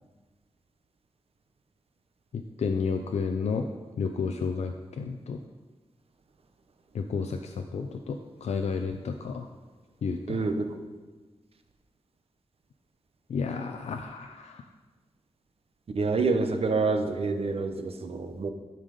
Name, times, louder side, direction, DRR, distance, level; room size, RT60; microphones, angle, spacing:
voice 1, 2.3-3.7 4.0-5.4 6.9-9.5 10.0-10.4 13.3-14.6, left 5 dB, 85° left, 5 dB, 0.5 m, -31 dB
voice 2, 15.9-18.5, right 4 dB, 65° right, 7 dB, 0.8 m, -27 dB
11.0 x 5.7 x 5.1 m, 1.3 s
wide cardioid pair, 125°, 11 cm